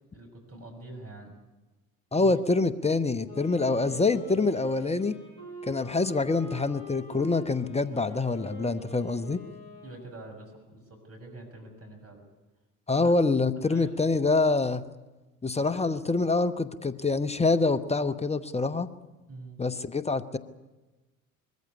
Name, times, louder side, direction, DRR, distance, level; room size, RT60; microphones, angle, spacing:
voice 1, 0.1-1.3 2.1-2.3 9.8-12.2 13.0-13.1 13.7-14.0 15.7-15.8 19.3-19.6, right 2 dB, 35° right, 2 dB, 6.6 m, -45 dB
voice 2, 2.1-5.2 5.6-9.4 12.9-14.8 15.4-18.9 19.6-20.4, left 3 dB, 15° left, 11 dB, 1.1 m, -26 dB
Wind instrument woodwind instrument, 3.1-10.3, equal, 85° right, 8.0 m, -44 dB
22.0 x 14.5 x 9.6 m, 1.2 s
figure-of-eight pair, 60°, 42 cm